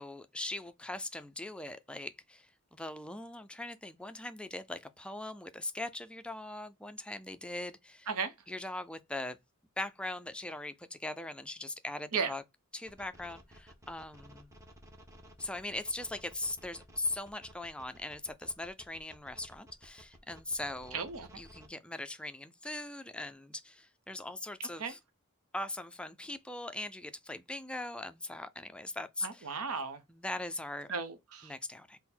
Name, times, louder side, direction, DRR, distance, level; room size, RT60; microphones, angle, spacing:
voice 1, 0.0-2.5 2.7-8.1 8.5-9.4 9.8-12.4 12.7-14.5 15.4-21.0 21.4-25.0 25.5-29.5 30.1-30.9 31.4-32.0, left 2 dB, 5° left, 0.3 m, -40 dB
sound 1, 12.9-21.7, equal, 15° right, 0.7 m, -55 dB
voice 2, 20.9-21.3 24.6-24.9 29.2-30.0 30.9-31.5, right 5 dB, 75° right, 0.8 m, -35 dB
3.7 x 2.1 x 4.3 m
head